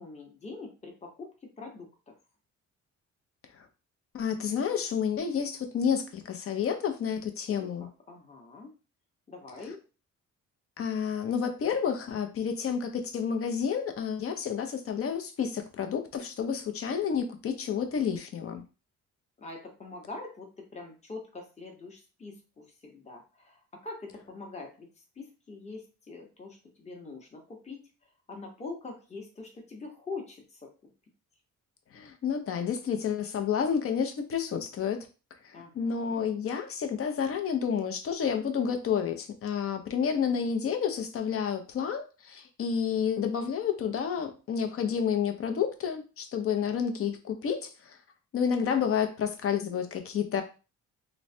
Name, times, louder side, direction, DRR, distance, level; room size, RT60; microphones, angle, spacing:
voice 1, 0.0-2.1 7.5-8.7 9.3-9.8 19.4-24.9 25.2-27.9 28.3-30.7 35.5-36.2, left 3 dB, 20° left, 0.9 m, -44 dB
voice 2, 4.1-7.9 10.8-18.6 31.9-35.1 35.4-48.0 48.3-50.4, left 7 dB, 50° left, 0.6 m, -30 dB
3.0 x 2.1 x 2.6 m
cardioid pair, 90°, 30 cm